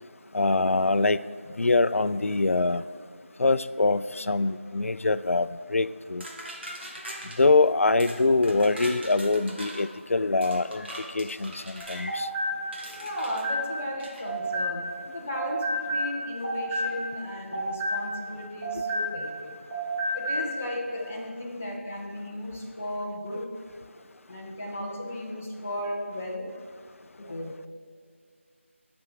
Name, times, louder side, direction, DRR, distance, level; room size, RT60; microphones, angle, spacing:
voice 1, 0.3-1.2 1.6-2.8 3.4-6.3 7.4-10.9 11.1-12.3, left 3 dB, 85° left, 14 dB, 0.4 m, -24 dB
sound 1, 6.2-7.4 8.0-8.2 8.4-9.9 10.4-12.0 12.7-13.4 14.0-14.2, right 1 dB, 55° right, 1.9 m, -40 dB
sound 2, 11.8-15.1 15.3-19.4 19.7-20.5, equal, 30° right, 2.0 m, -31 dB
voice 2, 12.9-19.5 20.1-23.5 24.3-26.5 27.2-27.5, left 1 dB, 10° left, -5 dB, 0.5 m, -35 dB
16.5 x 6.1 x 3.3 m, 2.2 s
figure-of-eight pair, 175°, 7 cm